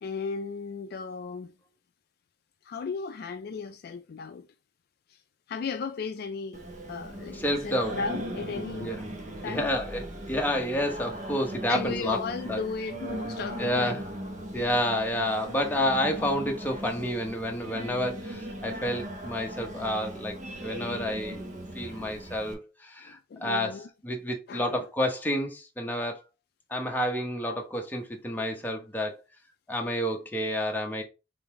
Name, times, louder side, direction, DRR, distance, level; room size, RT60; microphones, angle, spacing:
voice 1, 0.0-1.5 2.6-4.5 5.1-5.2 5.5-6.6 6.9-9.0 9.4-9.7 11.7-14.0 21.9-22.1 23.0-23.9 24.5-24.9 28.0-28.1, left 5 dB, 55° left, 0.4 m, -35 dB
Singing, 6.5-22.5, right 1 dB, 45° right, 0.8 m, -38 dB
voice 2, 7.3-8.0 8.8-9.0 9.4-12.2 12.5-12.6 13.6-14.0 14.5-21.4 21.7-26.2 26.7-29.2 29.7-31.0, equal, 10° left, 0.9 m, -29 dB
3.9 x 3.4 x 3.0 m
head